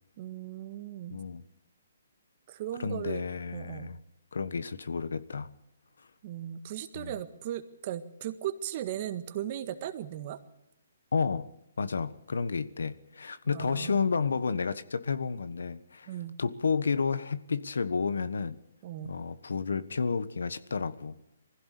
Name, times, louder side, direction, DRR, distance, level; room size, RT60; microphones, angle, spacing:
voice 1, 0.2-1.2 2.5-3.2 3.5-3.9 6.2-10.4 13.5-14.0 16.1-16.3 18.8-19.1, right 11 dB, 40° right, 1.6 m, -37 dB
voice 2, 1.1-1.4 2.8-4.0 4.3-5.5 6.9-7.2 11.1-11.5 11.8-16.1 16.4-18.6 19.0-21.2, left 5 dB, 85° left, 1.4 m, -31 dB
21.5 x 16.0 x 8.4 m
hypercardioid pair, 155°, 0 cm